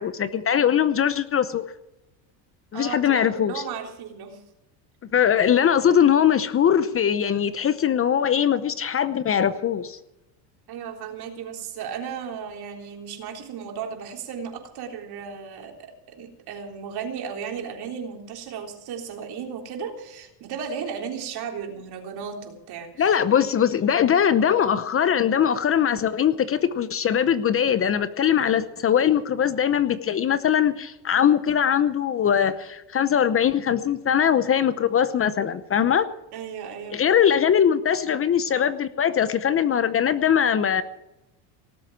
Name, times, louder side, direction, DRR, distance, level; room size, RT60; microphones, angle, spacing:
voice 1, 0.0-1.6 2.7-3.6 5.1-10.0 23.0-36.1 36.9-40.8, left 8 dB, 30° left, 13 dB, 0.8 m, -21 dB
voice 2, 2.7-4.4 10.7-23.2 36.3-37.0, right 7 dB, 55° right, 3 dB, 3.7 m, -35 dB
18.5 x 7.6 x 8.8 m, 0.93 s
supercardioid pair, 120°, 45 cm